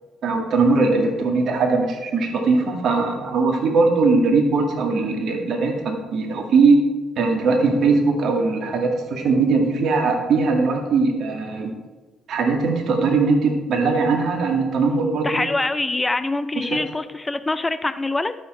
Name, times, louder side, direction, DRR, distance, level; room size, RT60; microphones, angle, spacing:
voice 1, 0.2-6.8 7.2-11.7 12.3-15.5, right 4 dB, 60° right, 2 dB, 2.2 m, -20 dB
voice 2, 15.2-18.4, left 2 dB, 20° left, 11 dB, 0.6 m, -24 dB
12.0 x 6.9 x 4.5 m, 1.3 s
hypercardioid pair, 50°, 0 cm